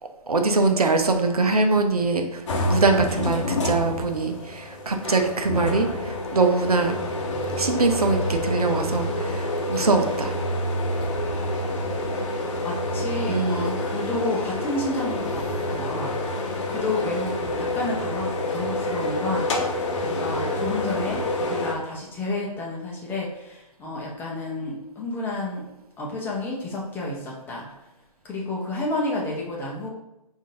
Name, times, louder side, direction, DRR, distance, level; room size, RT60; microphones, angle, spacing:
voice 1, 0.3-7.0 7.6-10.3 13.3-13.7, right 3 dB, 75° right, 5 dB, 0.7 m, -23 dB
sound 1, 2.5-21.7, left 1 dB, 50° left, 0.8 m, -28 dB
voice 2, 12.6-16.1 16.7-25.6 26.0-27.7 28.2-29.9, left 2 dB, 10° left, -3 dB, 0.7 m, -30 dB
5.1 x 2.7 x 3.7 m, 0.92 s
figure-of-eight pair, 130°, 20 cm